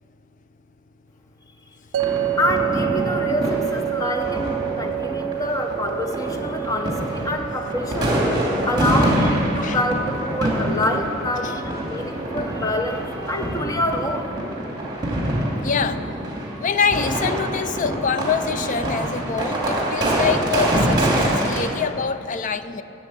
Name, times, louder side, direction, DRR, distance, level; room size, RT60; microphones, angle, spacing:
sound 1, 1.9-15.1, right 14 dB, 80° right, 0.4 m, -31 dB
sound 2, 2.0-21.6, right 1 dB, 20° right, 2.4 m, -25 dB
voice 1, 2.4-8.2 8.7-14.3, left 1 dB, 20° left, 4 dB, 0.9 m, -26 dB
voice 2, 8.3-8.7 9.6-9.8 15.6-16.0 16.6-22.8, left 6 dB, 40° left, 12 dB, 0.5 m, -25 dB
12.5 x 7.1 x 8.4 m, 2.9 s
head